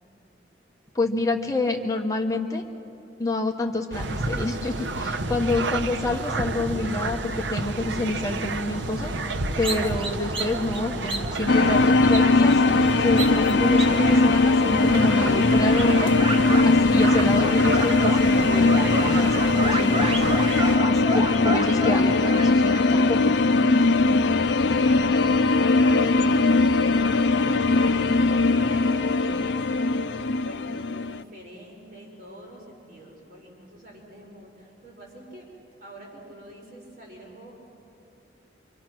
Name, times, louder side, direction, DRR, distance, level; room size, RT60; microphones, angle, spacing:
voice 1, 0.9-2.6 3.2-20.4 20.9-23.3 23.7-23.9, left 2 dB, 20° left, 2 dB, 1.2 m, -28 dB
sound 1, 3.9-20.8, right 2 dB, 85° right, 0.9 m, -30 dB
sound 2, 9.6-14.8 15.2-16.7 17.0-22.8, right 2 dB, 30° right, 1.2 m, -32 dB
sound 3, 11.5-31.2, left 3 dB, 75° left, 0.5 m, -20 dB
voice 2, 24.1-26.3 26.6-28.1 28.5-35.5 35.8-37.5, right 1 dB, 50° right, -2 dB, 4.9 m, -46 dB
27.0 x 25.0 x 6.1 m, 2.6 s
head